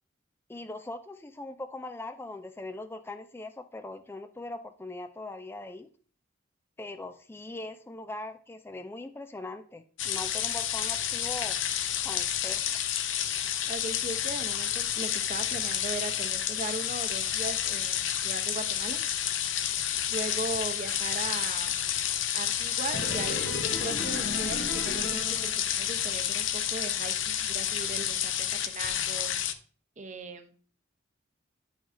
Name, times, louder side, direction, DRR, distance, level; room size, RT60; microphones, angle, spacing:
voice 1, 0.5-5.9 6.8-11.6 12.0-12.6, left 2 dB, 10° left, 0.4 m, -40 dB
sound 1, 10.0-29.5, left 10 dB, 80° left, 0.6 m, -30 dB
voice 2, 13.7-19.0 20.1-21.7 22.3-29.3 30.0-30.7, right 3 dB, 40° right, 0.7 m, -38 dB
sound 2, 22.9-26.0 26.3-26.4, left 2 dB, 55° left, 0.9 m, -36 dB
10.0 x 5.0 x 2.6 m
head